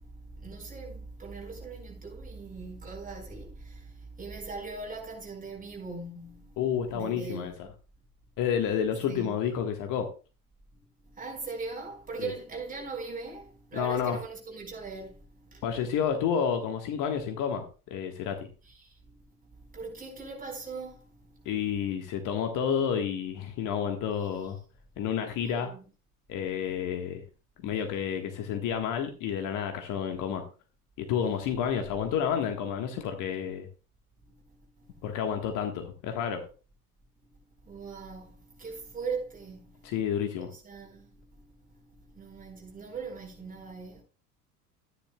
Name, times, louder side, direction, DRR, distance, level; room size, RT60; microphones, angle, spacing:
voice 1, 0.4-3.8 4.2-6.5 6.9-7.6 9.1-9.3 11.2-15.2 15.5-15.6 18.6-18.9 19.7-21.0 24.2-24.5 25.4-25.8 37.7-38.3 38.6-39.7 40.4-41.0 42.2-44.0, right 4 dB, 15° right, 4.6 m, -40 dB
voice 2, 6.6-7.5 8.4-10.1 12.2-12.3 13.7-14.2 15.6-18.5 21.4-24.6 25.0-25.7 26.3-27.2 27.6-30.4 31.0-33.7 35.0-36.4 39.8-40.5, left 8 dB, 40° left, 1.5 m, -30 dB
13.5 x 10.0 x 2.3 m
figure-of-eight pair, 75°, 46 cm